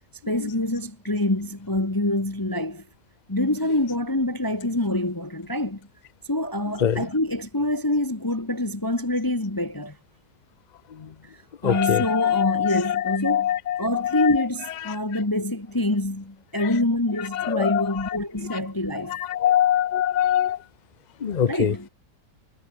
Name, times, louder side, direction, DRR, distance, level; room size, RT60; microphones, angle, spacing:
voice 1, 0.3-2.8 3.3-5.8 6.3-10.0 11.2-11.3 11.6-13.5 13.8-19.2 21.5-21.9, left 1 dB, 15° left, 1.3 m, -26 dB
voice 2, 6.7-7.1 11.0-11.1 11.6-14.7 15.1-15.2 16.6-16.8 17.1-18.2 18.5-18.6 18.9-20.6 21.2-21.8, left 10 dB, 40° left, 0.6 m, -24 dB
omnidirectional pair, 1.9 m